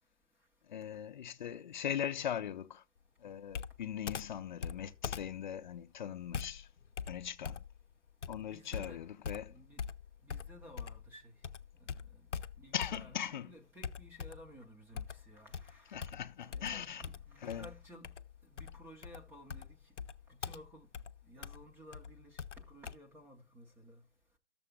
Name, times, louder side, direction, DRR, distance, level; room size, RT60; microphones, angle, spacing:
voice 1, 0.7-2.8 3.2-6.7 7.1-7.6 8.3-9.5 12.7-13.5 15.9-17.0 17.4-17.7, left 9 dB, 40° left, 0.6 m, -40 dB
Computer keyboard, 3.5-11.1 11.4-13.3 13.8-14.6 15.0-23.0, left 7 dB, 85° left, 0.6 m, -43 dB
voice 2, 8.4-9.0 9.5-9.9 10.2-11.4 11.8-12.3 12.6-16.0 16.4-18.1 18.5-19.8 20.4-20.9 21.2-24.0, equal, 5° right, 0.6 m, -55 dB
12.5 x 6.9 x 3.5 m
figure-of-eight pair, 130°, 35 cm